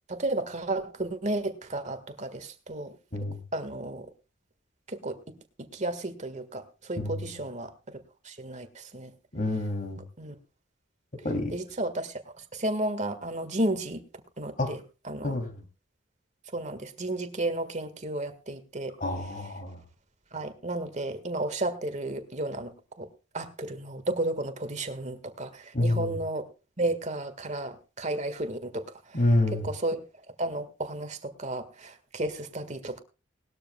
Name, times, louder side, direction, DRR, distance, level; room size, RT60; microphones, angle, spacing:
voice 1, 0.1-3.0 3.5-4.1 4.9-9.1 10.2-10.4 11.5-14.0 14.4-15.4 16.5-18.9 20.3-23.1 23.3-26.5 26.8-29.2 29.6-30.0 30.4-33.0, right 2 dB, 35° right, 9 dB, 1.8 m, -33 dB
voice 2, 7.0-7.3 9.3-10.0 11.2-11.6 14.6-14.7 15.2-15.5 19.0-19.8 25.7-26.2 29.1-29.7, left 1 dB, 45° left, 6 dB, 3.1 m, -28 dB
20.0 x 13.0 x 2.3 m, 0.32 s
head